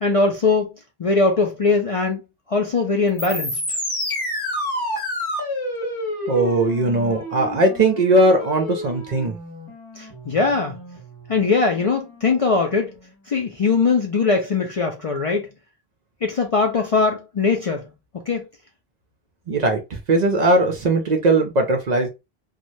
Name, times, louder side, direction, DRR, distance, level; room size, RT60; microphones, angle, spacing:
voice 1, 0.0-0.7 1.0-2.2 2.5-3.8 10.0-10.8 11.3-12.9 13.3-15.5 16.2-17.9 18.3-18.4, left 4 dB, 50° left, 0.4 m, -21 dB
sound 1, 3.1-13.1, left 1 dB, 20° left, 1.4 m, -30 dB
voice 2, 6.3-9.4 19.5-22.1, right 2 dB, 50° right, 0.6 m, -19 dB
3.1 x 2.2 x 2.6 m
omnidirectional pair, 1.0 m